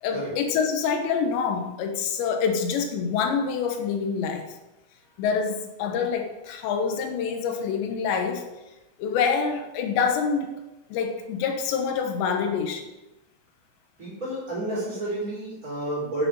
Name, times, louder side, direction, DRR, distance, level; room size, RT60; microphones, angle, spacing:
voice 1, 0.0-4.5 5.2-8.5 9.0-10.6 10.9-12.9, left 6 dB, 90° left, 5 dB, 3.4 m, -26 dB
voice 2, 14.0-16.3, right 1 dB, 20° right, -6 dB, 4.9 m, -30 dB
10.0 x 8.9 x 5.3 m, 1.0 s
omnidirectional pair, 4.9 m